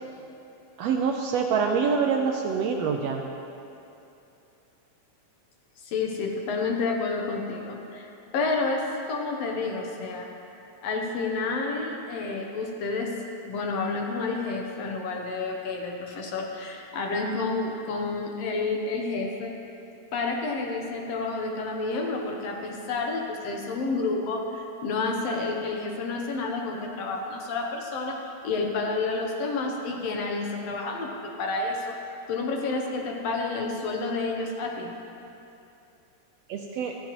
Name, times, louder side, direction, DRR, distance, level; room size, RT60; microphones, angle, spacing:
voice 1, 0.8-3.2 36.5-37.0, right 6 dB, 80° right, 2 dB, 1.5 m, -25 dB
voice 2, 5.8-8.1 8.3-10.3 10.8-19.6 20.1-28.2 28.4-32.0 32.3-34.9, left 3 dB, 65° left, 1 dB, 1.8 m, -30 dB
15.5 x 14.0 x 3.0 m, 2.7 s
omnidirectional pair, 3.4 m